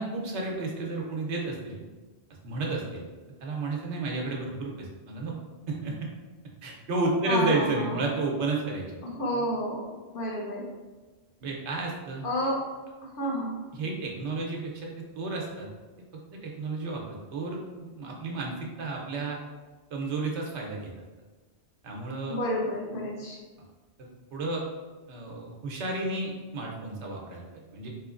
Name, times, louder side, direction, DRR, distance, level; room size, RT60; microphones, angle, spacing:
voice 1, 0.0-1.8 2.4-3.0 3.4-5.3 5.7-5.9 6.6-9.0 11.4-12.2 13.7-14.9 15.1-15.7 16.0-16.1 16.3-19.4 19.9-20.9 21.8-22.4 24.0-24.6 25.1-27.9, right 2 dB, 85° right, -1 dB, 1.0 m, -32 dB
voice 2, 7.3-8.0 9.0-10.7 12.2-12.7 13.2-13.6 22.3-23.4, equal, 55° left, -2 dB, 0.9 m, -30 dB
3.7 x 3.1 x 2.4 m, 1.3 s
omnidirectional pair, 1.1 m